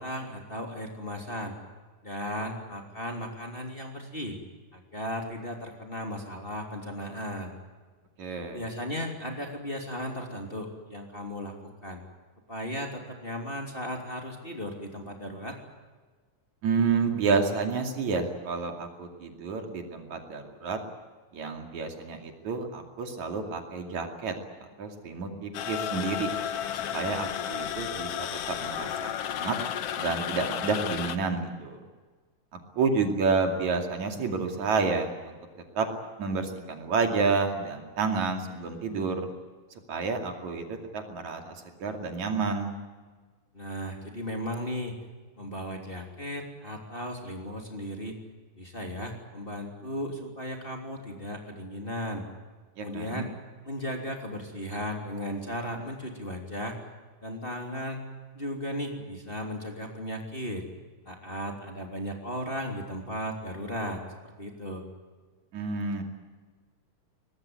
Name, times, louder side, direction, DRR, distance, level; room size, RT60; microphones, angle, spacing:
voice 1, 0.0-1.5 2.0-4.4 4.7-7.5 8.5-12.0 12.5-15.6 43.5-44.9 45.4-48.1 48.6-52.2 52.8-53.3 53.6-56.8 57.2-58.0 58.3-60.6 61.0-64.0 64.4-64.8, equal, 15° left, 2 dB, 3.2 m, -36 dB
voice 2, 8.2-8.6 16.6-20.8 21.3-24.4 24.8-26.3 26.7-29.6 30.0-31.8 32.7-35.3 35.8-35.9 36.2-39.3 39.9-42.8 52.8-53.3 65.5-66.0, right 4 dB, 70° right, 4 dB, 3.9 m, -29 dB
sound 1, 25.5-31.2, left 10 dB, 60° left, 1.9 m, -33 dB
23.0 x 20.0 x 9.6 m, 1.4 s
omnidirectional pair, 3.5 m